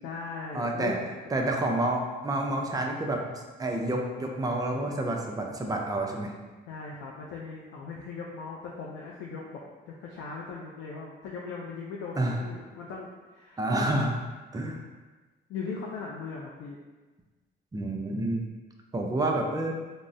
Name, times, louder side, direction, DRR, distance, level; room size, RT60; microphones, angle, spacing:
voice 1, 0.0-1.1 6.7-14.1 15.5-16.8, left 4 dB, 75° left, -3 dB, 0.4 m, -39 dB
voice 2, 0.5-1.0 1.3-6.3 12.2-12.4 13.6-14.1 14.5-14.8 17.7-18.5 18.9-19.8, right 1 dB, 20° right, 1 dB, 0.4 m, -29 dB
3.6 x 2.0 x 2.5 m, 1.3 s
cardioid pair, 90°, 20 cm